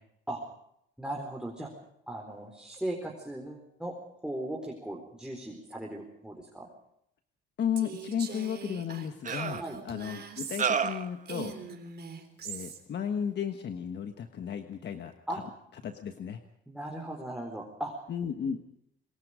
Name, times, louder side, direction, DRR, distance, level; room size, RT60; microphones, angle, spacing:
voice 1, 1.0-1.7 2.1-3.9 4.2-6.7 9.6-9.8 15.3-15.5 16.7-17.9, right 1 dB, 5° right, 0 dB, 4.2 m, -37 dB
voice 2, 7.6-11.5 12.4-15.4 15.8-16.4 18.1-18.6, left 8 dB, 60° left, 7 dB, 1.5 m, -34 dB
Female speech woman speaking, 7.8-10.9 11.2-12.8, right 6 dB, 55° right, 4.0 m, -42 dB
sound 1, 8.3-8.4 9.2-9.6 10.6-11.1, right 6 dB, 40° right, 1.3 m, -29 dB
27.5 x 20.5 x 5.1 m, 0.74 s
cardioid pair, 90°, 20 cm